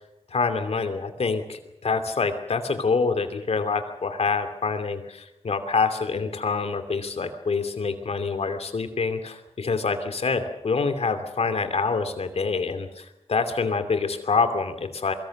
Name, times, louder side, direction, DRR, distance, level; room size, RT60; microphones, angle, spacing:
voice 1, 0.3-15.1, left 4 dB, 75° left, 8 dB, 2.7 m, -26 dB
24.0 x 22.5 x 6.6 m, 0.89 s
cardioid pair, 55°, 11 cm